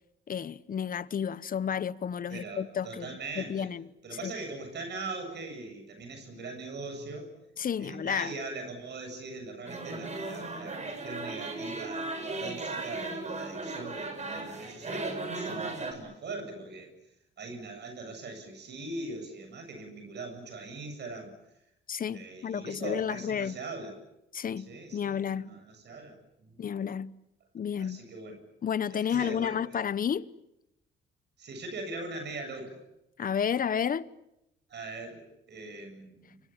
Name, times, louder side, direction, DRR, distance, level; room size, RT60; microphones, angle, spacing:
voice 1, 0.3-3.9 4.2-4.3 7.6-8.3 21.9-23.6 24.3-25.5 26.6-27.1 27.5-28.0 28.6-30.3 33.2-34.1, left 8 dB, 45° left, 1.0 m, -31 dB
voice 2, 2.3-3.7 4.0-7.3 7.8-16.9 17.4-21.3 22.1-24.0 24.6-26.6 27.8-28.4 28.9-29.6 31.4-32.8 34.7-36.4, right 3 dB, 60° right, 7.8 m, -41 dB
sound 1, 9.7-15.9, right 3 dB, 35° right, 6.5 m, -36 dB
30.0 x 24.5 x 7.4 m
cardioid pair, 90°, 20 cm